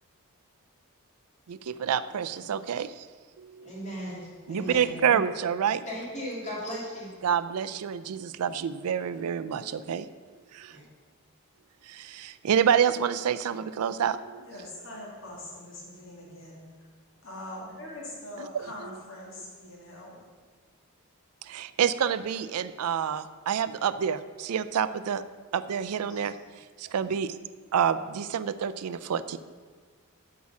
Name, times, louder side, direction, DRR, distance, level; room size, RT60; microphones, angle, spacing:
voice 1, 1.5-3.1 4.5-5.8 7.2-10.1 10.5-10.8 11.9-14.4 18.4-18.6 21.4-25.2 25.5-26.3 26.8-27.3 27.7-29.4, right 8 dB, 80° right, 14 dB, 0.4 m, -28 dB
voice 2, 3.6-5.2 5.9-7.1 10.7-10.9, equal, 30° left, -5 dB, 2.5 m, -37 dB
voice 3, 14.4-16.6 17.2-20.2 25.9-26.2, left 1 dB, 60° left, -4 dB, 2.5 m, -43 dB
8.4 x 4.8 x 7.1 m, 1.5 s
head